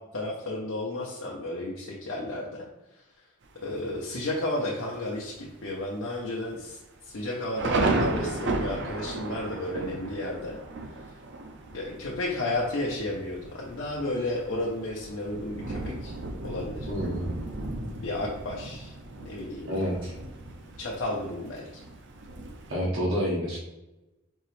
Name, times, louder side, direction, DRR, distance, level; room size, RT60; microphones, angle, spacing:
voice 1, 0.1-2.7 3.6-6.8 7.0-10.6 11.7-16.1 16.4-16.9 18.0-18.9 19.2-19.7 20.8-21.7, left 1 dB, 80° left, -4 dB, 0.7 m, -32 dB
Thunder, 3.4-4.0 4.5-4.6 4.9-5.3 5.7-5.8 6.5-22.7, right 2 dB, 65° right, 0.5 m, -35 dB
voice 2, 16.8-17.3 19.7-20.1 22.7-23.6, equal, 85° right, -6 dB, 1.1 m, -28 dB
4.5 x 2.9 x 3.1 m, 1.0 s
head